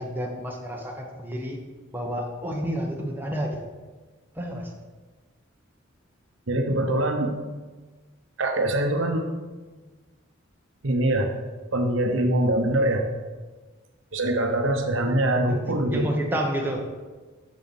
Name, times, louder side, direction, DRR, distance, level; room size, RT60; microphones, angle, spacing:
voice 1, 0.0-1.6 1.9-3.6 4.3-4.7 15.5-16.8, right 1 dB, 10° right, 0 dB, 0.9 m, -30 dB
voice 2, 6.5-7.4 8.4-9.3 10.8-11.3 11.7-13.1 14.1-16.0, right 1 dB, 70° right, 4 dB, 0.9 m, -23 dB
7.4 x 6.8 x 4.2 m, 1.3 s
head